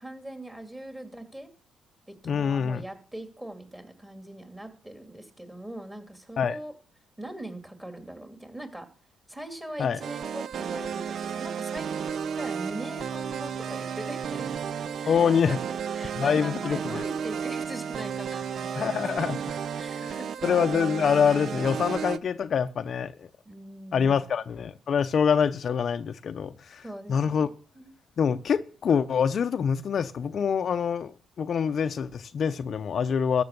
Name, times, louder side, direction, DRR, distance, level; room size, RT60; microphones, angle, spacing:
voice 1, 0.0-1.5 2.1-6.7 7.2-8.9 9.3-14.5 15.0-19.4 19.8-20.5 23.5-24.2 26.8-27.9, right 1 dB, 10° right, 2.5 m, -41 dB
voice 2, 2.3-2.8 6.4-6.6 9.8-10.0 15.1-15.6 16.1-17.0 18.7-19.4 20.0-20.1 20.4-23.3 23.9-26.8 27.1-27.5 28.2-33.4, left 7 dB, 55° left, 0.6 m, -25 dB
sound 1, 10.0-22.2, right 7 dB, 60° right, 0.5 m, -33 dB
13.5 x 6.8 x 6.7 m
cardioid pair, 90°, 0 cm